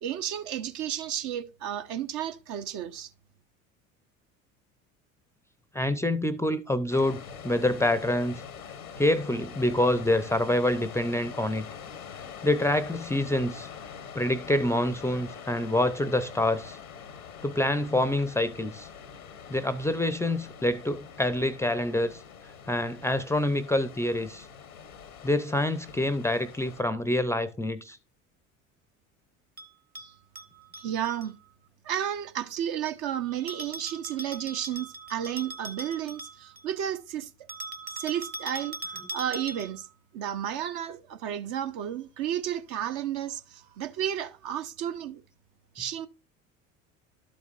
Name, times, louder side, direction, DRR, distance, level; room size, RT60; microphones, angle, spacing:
voice 1, 0.0-3.1 30.0-30.1 30.8-31.3 31.8-37.3 38.0-38.8 39.1-39.9 40.1-45.2 45.7-46.1, right 10 dB, 55° right, 0.9 m, -32 dB
voice 2, 5.7-8.4 9.0-11.7 12.4-13.7 14.1-16.8 17.4-18.9 19.5-22.2 22.7-24.5 25.2-28.0 38.9-39.1, left 1 dB, 5° left, 0.5 m, -26 dB
sound 1, 6.9-26.8, left 7 dB, 85° left, 1.0 m, -44 dB
Bell, 29.6-31.3 33.5-36.7 37.5-39.9, right 2 dB, 25° right, 0.9 m, -41 dB
12.0 x 5.3 x 2.5 m
figure-of-eight pair, 65°, 41 cm